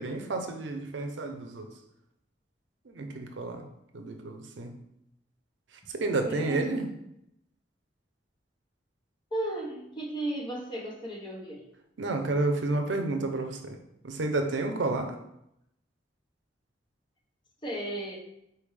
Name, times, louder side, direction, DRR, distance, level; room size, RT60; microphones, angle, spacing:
voice 1, 0.0-1.7 2.9-3.6 3.9-4.7 5.9-6.9 12.0-13.8 14.0-15.1, right 2 dB, 75° right, 6 dB, 0.5 m, -30 dB
voice 2, 6.3-6.7 9.3-11.6 17.6-18.2, right 1 dB, 25° left, -2 dB, 1.1 m, -34 dB
4.4 x 3.5 x 3.2 m, 0.80 s
head